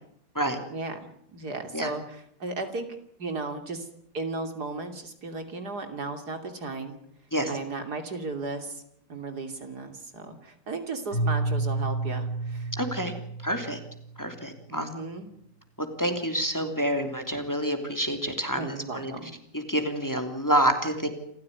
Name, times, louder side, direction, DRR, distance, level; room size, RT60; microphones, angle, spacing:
voice 1, 0.7-2.9 3.2-3.9 4.1-7.0 7.5-8.8 9.1-12.7 14.7-15.3 18.5-19.3, right 3 dB, 65° right, 7 dB, 3.4 m, -35 dB
Keyboard (musical), 11.1-14.2, right 2 dB, 40° left, 5.3 m, -30 dB
voice 2, 12.8-13.1 13.4-13.8 14.2-14.9 16.0-19.1 19.5-21.1, right 1 dB, 10° left, 6 dB, 3.0 m, -27 dB
28.5 x 15.5 x 9.6 m, 0.71 s
omnidirectional pair, 1.8 m